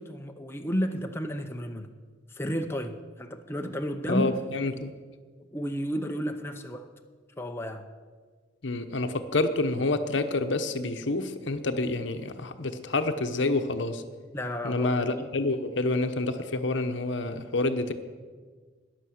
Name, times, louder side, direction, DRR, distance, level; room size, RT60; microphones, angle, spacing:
voice 1, 0.0-1.9 2.3-4.4 5.5-6.9 7.4-7.8 14.3-15.3, equal, 15° left, 0.6 m, -32 dB
voice 2, 4.1-4.9 8.6-14.0 14.6-17.9, left 2 dB, 70° left, 0.9 m, -28 dB
13.5 x 10.0 x 6.4 m
head